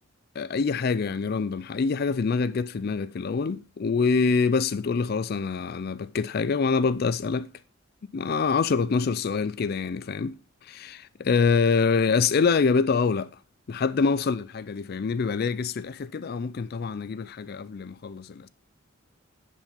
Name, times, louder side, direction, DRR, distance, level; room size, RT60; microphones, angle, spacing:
voice 1, 0.4-7.5 8.1-13.3 13.7-18.5, left 5 dB, 50° left, 0.4 m, -25 dB
10.5 x 5.4 x 5.1 m
head